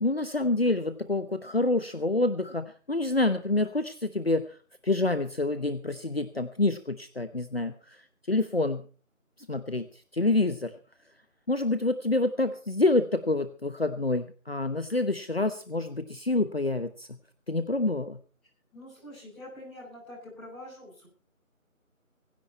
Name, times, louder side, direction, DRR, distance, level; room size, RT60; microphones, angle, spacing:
voice 1, 0.0-4.4 4.8-8.0 8.3-8.8 9.5-9.9 10.1-10.7 11.5-17.1 17.5-18.2, left 2 dB, 45° left, 10 dB, 1.0 m, -27 dB
voice 2, 18.7-21.1, left 1 dB, ahead, -13 dB, 4.7 m, -45 dB
24.5 x 10.5 x 4.4 m, 0.39 s
figure-of-eight pair, 170°, 42 cm